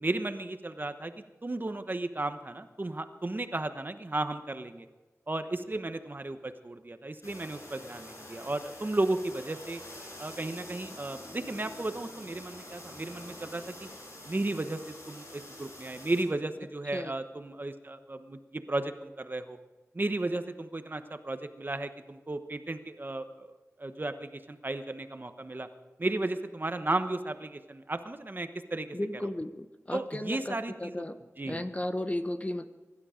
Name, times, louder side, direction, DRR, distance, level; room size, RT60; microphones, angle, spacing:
voice 1, 0.0-1.1 1.4-4.9 5.3-9.8 10.2-13.9 14.2-19.6 19.9-23.5 23.8-25.7 26.0-29.0 29.9-31.0 31.4-31.6, right 2 dB, 35° right, 9 dB, 1.0 m, -34 dB
sound 1, 7.2-16.2, left 1 dB, 65° left, 5.8 m, -46 dB
voice 2, 28.9-31.2 31.4-32.7, left 1 dB, 25° left, 9 dB, 0.9 m, -34 dB
23.5 x 12.0 x 5.1 m, 1.2 s
wide cardioid pair, 80°, 6 cm